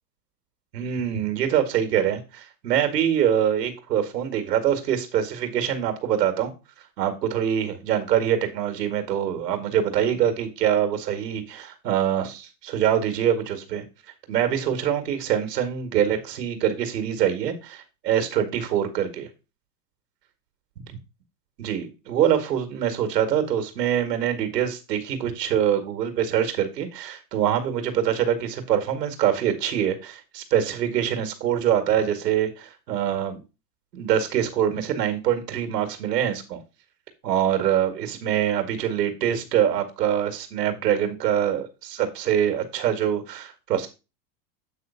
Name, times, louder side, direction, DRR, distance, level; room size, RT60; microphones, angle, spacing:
voice 1, 0.7-6.5 7.0-13.8 14.3-19.3 20.9-21.0 21.6-33.4 33.9-36.6 37.2-43.9, right 9 dB, 85° right, 2.0 m, -24 dB
8.4 x 4.0 x 5.5 m
hypercardioid pair, 105°, 47 cm